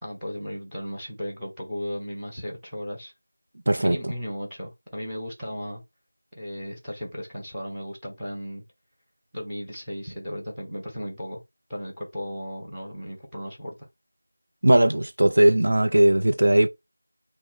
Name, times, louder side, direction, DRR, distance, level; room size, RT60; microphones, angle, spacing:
voice 1, 0.0-3.1 3.8-5.8 6.3-8.6 9.3-11.4 11.7-13.9, equal, ahead, 1.1 m, -35 dB
voice 2, 3.7-4.0 14.6-16.7, right 1 dB, 55° right, 0.6 m, -18 dB
4.1 x 2.2 x 4.3 m
figure-of-eight pair, 175°, 0 cm